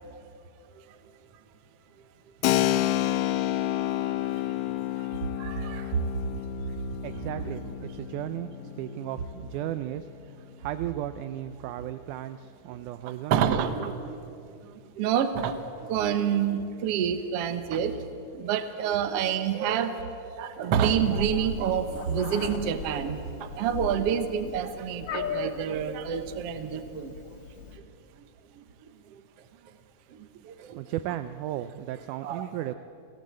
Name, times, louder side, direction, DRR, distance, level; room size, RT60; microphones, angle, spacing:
Keyboard (musical), 2.4-10.8, left 14 dB, 80° left, 2.3 m, -30 dB
voice 1, 5.4-5.9 6.3-6.4 7.4-7.5 8.9-9.0 13.3-14.2 15.0-18.0 18.3-19.9 20.3-27.1 30.4-30.7 32.2-32.4, right 8 dB, 60° right, 9 dB, 1.7 m, -28 dB
voice 2, 7.0-8.5 8.8-10.1 10.6-13.3 30.7-32.8, right 13 dB, 75° right, 11 dB, 2.0 m, -35 dB
Meow, 20.9-27.8, left 6 dB, 60° left, 2.9 m, -38 dB
28.5 x 18.0 x 7.7 m, 2.6 s
omnidirectional pair, 3.9 m